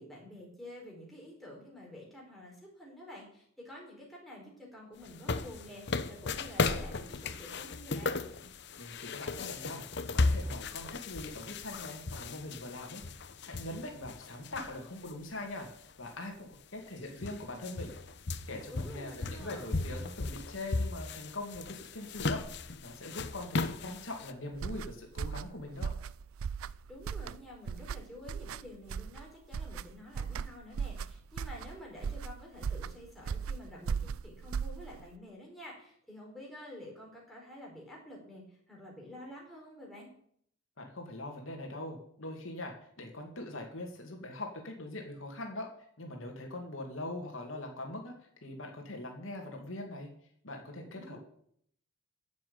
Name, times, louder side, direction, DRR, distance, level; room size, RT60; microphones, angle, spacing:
voice 1, 0.0-8.2 18.7-19.7 26.9-40.1 50.8-51.2, left 1 dB, ahead, -3 dB, 4.4 m, -49 dB
sound 1, 5.0-15.1 15.5-15.6 16.5-16.6 16.9-24.3, left 3 dB, 55° left, 0.8 m, -36 dB
voice 2, 8.8-9.9 10.1-13.0 13.4-15.7 16.0-18.0 18.5-25.9 40.8-45.7 46.0-48.1 48.4-50.1 50.4-51.2, left 2 dB, 70° left, 2 dB, 2.4 m, -42 dB
sound 2, 24.5-35.1, right 6 dB, 90° right, 0.4 m, -38 dB
10.5 x 7.5 x 8.7 m, 0.65 s
head